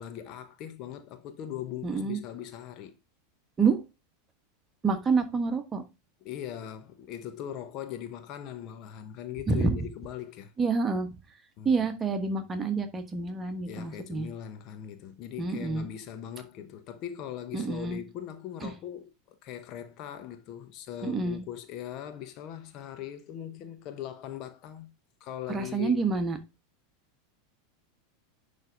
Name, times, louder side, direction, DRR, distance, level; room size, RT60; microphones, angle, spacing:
voice 1, 0.0-2.9 6.2-10.5 11.6-11.9 13.6-24.9 25.2-26.0, left 10 dB, 45° left, 1.0 m, -40 dB
voice 2, 1.8-2.2 3.6-3.8 4.8-5.8 9.5-9.8 10.6-11.1 11.6-14.3 15.4-15.9 17.5-18.0 18.6-18.7 21.0-21.4 25.5-26.4, right 4 dB, 20° right, 1.4 m, -28 dB
10.5 x 3.5 x 3.9 m
figure-of-eight pair, 85°, 0 cm